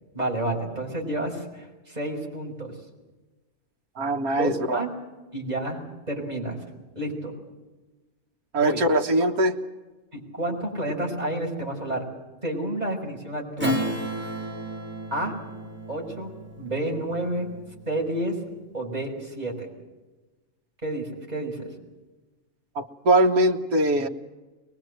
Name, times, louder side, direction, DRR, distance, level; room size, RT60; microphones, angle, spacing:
voice 1, 0.1-2.7 4.3-4.9 5.3-5.8 6.1-6.6 7.0-7.3 8.6-8.8 9.2-9.3 10.1-12.0 12.4-13.8 15.1-15.4 15.9-17.5 17.9-18.4 18.7-19.7 20.8-21.7, right 1 dB, 25° right, 0 dB, 5.7 m, -30 dB
voice 2, 4.0-4.8 8.5-9.6 22.8-24.1, right 1 dB, 85° right, 4 dB, 1.9 m, -22 dB
Strum, 13.6-18.5, equal, 5° right, 3.4 m, -33 dB
23.0 x 21.0 x 7.9 m, 1.2 s
omnidirectional pair, 1.5 m